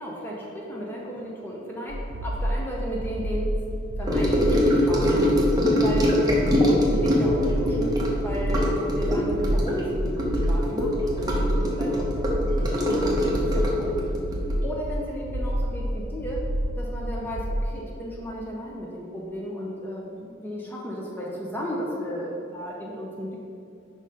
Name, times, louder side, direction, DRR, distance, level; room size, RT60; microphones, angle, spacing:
voice 1, 0.0-3.5 4.0-5.3 5.8-14.0 14.6-16.4 16.8-23.4, equal, 10° left, -3 dB, 0.6 m, -34 dB
sound 1, 1.9-17.7, equal, 80° right, 0.4 m, -29 dB
Gurgling / Sink (filling or washing) / Trickle dribble, 4.1-15.7 16.0-16.3 16.6-16.7, equal, 20° right, 0.8 m, -23 dB
5.2 x 4.1 x 4.9 m, 2.6 s
head